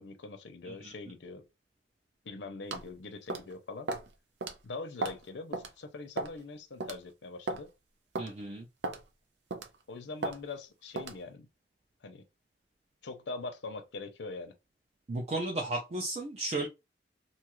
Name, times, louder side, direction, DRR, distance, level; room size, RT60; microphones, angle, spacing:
voice 1, 0.0-1.5 2.2-3.9 4.6-7.7 9.9-11.5 12.0-12.2 13.0-14.5, left 3 dB, 85° left, 0.6 m, -42 dB
sound 1, 2.7-2.9 3.3-3.5 3.9-4.1 4.4-4.5 5.0-5.2 5.5-5.7 6.2-6.4 6.8-7.0 7.5-7.6 8.2-8.3 8.8-9.0 9.5-9.8 10.2-10.4 11.0-11.2, right 3 dB, 85° right, 0.5 m, -35 dB
voice 2, 8.2-8.7 15.1-16.7, right 2 dB, 40° right, 0.5 m, -34 dB
2.6 x 2.4 x 3.0 m
head